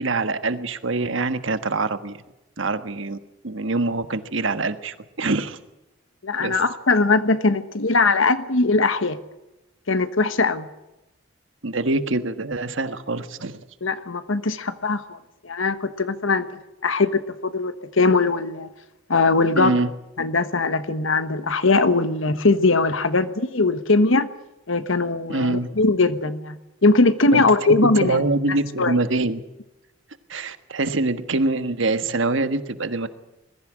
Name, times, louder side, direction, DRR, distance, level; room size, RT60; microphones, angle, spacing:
voice 1, 0.0-2.2 2.6-3.2 3.4-5.6 6.4-6.6 11.6-13.6 19.5-19.9 25.3-25.7 27.3-27.4 27.8-29.4 30.3-33.1, right 2 dB, 70° right, 11 dB, 1.4 m, -24 dB
voice 2, 6.2-9.2 9.9-10.7 13.8-15.2 15.4-18.7 19.1-19.8 20.2-24.3 24.7-28.2 28.8-29.0, left 3 dB, 75° left, 12 dB, 1.3 m, -20 dB
21.0 x 15.0 x 8.8 m, 0.98 s
head